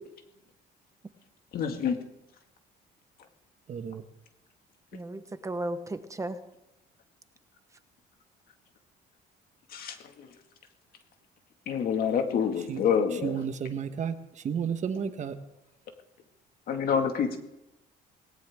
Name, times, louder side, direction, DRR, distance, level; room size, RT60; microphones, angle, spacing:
voice 1, 1.5-2.0 9.7-10.3 11.7-13.4 16.7-17.4, left 7 dB, 60° left, 5 dB, 2.2 m, -27 dB
voice 2, 3.7-4.0 12.7-12.8 13.2-14.1 14.4-15.3, right 7 dB, 45° right, 9 dB, 1.3 m, -31 dB
voice 3, 4.9-6.4, right 1 dB, 20° right, 9 dB, 1.1 m, -35 dB
19.0 x 18.5 x 3.7 m, 0.90 s
cardioid pair, 110°, 17 cm